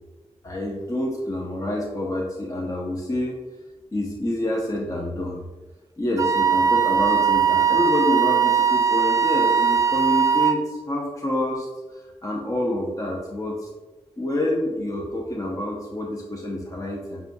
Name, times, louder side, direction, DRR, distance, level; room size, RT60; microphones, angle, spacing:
voice 1, 0.4-3.4 3.9-5.4 6.0-13.7 14.2-17.2, left 1 dB, 25° left, -2 dB, 0.6 m, -27 dB
Wind instrument woodwind instrument, 6.2-10.6, right 7 dB, 25° right, 0.3 m, -20 dB
6.7 x 2.2 x 2.6 m, 1.2 s
cardioid pair, 60°, 12 cm